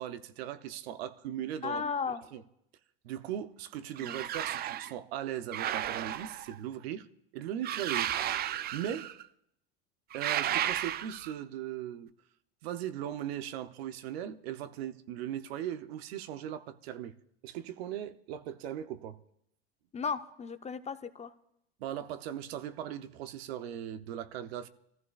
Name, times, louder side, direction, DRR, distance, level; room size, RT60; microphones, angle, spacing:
voice 1, 0.0-1.8 2.3-2.4 3.0-7.1 7.3-8.1 8.7-9.1 10.1-12.1 12.6-17.1 17.4-19.2 21.8-24.7, right 10 dB, 75° right, 0.8 m, -38 dB
voice 2, 1.6-2.2 4.0-4.2 19.9-21.3, left 5 dB, 20° left, 0.7 m, -35 dB
sound 1, 4.0-4.9 5.5-6.6 7.6-9.2 10.1-11.4, right 11 dB, 30° right, 0.4 m, -33 dB
26.0 x 14.5 x 2.4 m
hypercardioid pair, 95°, 31 cm